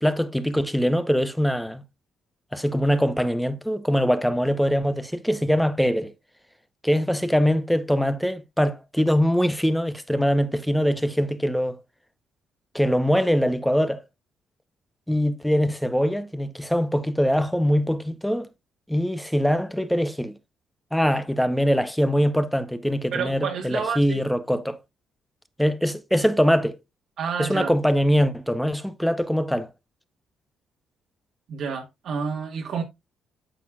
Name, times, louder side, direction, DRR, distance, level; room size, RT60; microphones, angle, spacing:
voice 1, 0.0-1.8 2.5-6.1 6.8-11.8 12.7-14.0 15.1-18.5 18.9-20.3 20.9-24.8 25.6-26.8 27.4-29.7, equal, ahead, 0.8 m, -22 dB
voice 2, 23.1-24.2 27.2-27.7 31.5-32.8, right 6 dB, 65° right, 1.4 m, -29 dB
9.0 x 6.8 x 2.4 m
cardioid pair, 90°, 0 cm